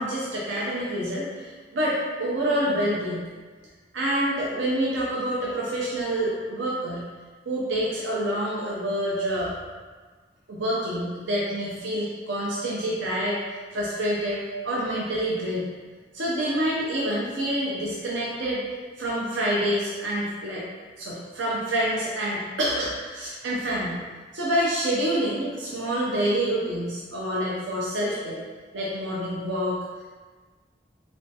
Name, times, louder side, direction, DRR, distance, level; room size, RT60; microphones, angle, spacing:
voice 1, 0.0-3.2 3.9-7.0 7.5-9.5 10.5-13.4 13.7-15.7 16.1-18.6 19.0-20.7 21.0-24.0 24.3-28.4 28.7-29.8, right 1 dB, 85° right, -5 dB, 0.6 m, -27 dB
3.3 x 3.0 x 2.8 m, 1.4 s
head